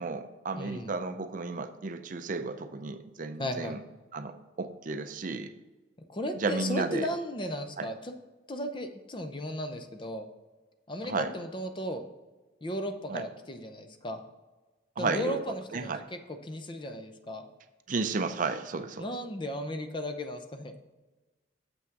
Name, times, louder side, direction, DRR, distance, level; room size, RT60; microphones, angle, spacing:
voice 1, 0.0-3.8 4.1-5.5 6.4-7.1 7.8-7.9 11.0-11.3 13.1-13.2 15.0-15.4 15.7-16.0 17.9-19.1, right 4 dB, 45° right, 9 dB, 0.5 m, -33 dB
voice 2, 0.5-0.9 3.4-3.8 6.1-8.1 8.5-10.3 10.9-12.0 12.6-14.2 15.0-17.5 19.0-20.7, equal, 25° left, 7 dB, 0.6 m, -35 dB
7.0 x 6.1 x 4.6 m, 1.2 s
head